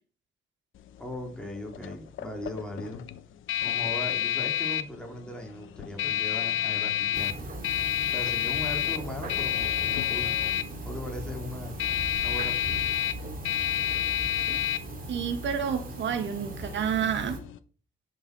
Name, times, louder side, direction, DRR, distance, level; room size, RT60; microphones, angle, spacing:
sound 1, 0.8-17.6, left 11 dB, 80° left, 1.0 m, -30 dB
voice 1, 1.0-3.0 3.6-7.4 8.0-10.4 10.8-11.8 12.2-12.9, left 1 dB, 5° left, 3.8 m, -39 dB
sound 2, 7.1-17.4, right 2 dB, 45° right, 2.9 m, -39 dB
voice 2, 15.1-17.4, right 7 dB, 70° right, 1.9 m, -29 dB
10.5 x 6.6 x 6.3 m
cardioid pair, 115°, 20 cm